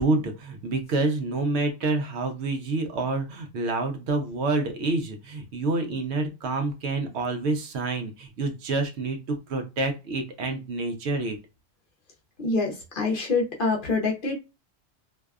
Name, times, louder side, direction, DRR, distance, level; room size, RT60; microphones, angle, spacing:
voice 1, 0.0-11.4, right 3 dB, 70° right, 0.8 m, -28 dB
voice 2, 12.4-14.4, left 3 dB, 55° left, 0.7 m, -26 dB
2.6 x 2.2 x 2.3 m
omnidirectional pair, 1.2 m